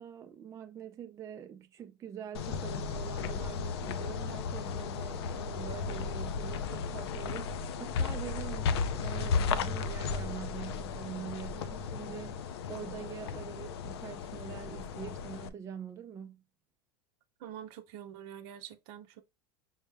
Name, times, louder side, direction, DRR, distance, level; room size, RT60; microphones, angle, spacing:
voice 1, 0.0-16.4, right 8 dB, 25° right, 0.4 m, -44 dB
sound 1, 2.3-15.5, left 5 dB, 85° left, 0.5 m, -35 dB
voice 2, 17.4-19.2, right 10 dB, 60° right, 0.7 m, -46 dB
5.4 x 2.0 x 3.3 m
supercardioid pair, 120°, 13 cm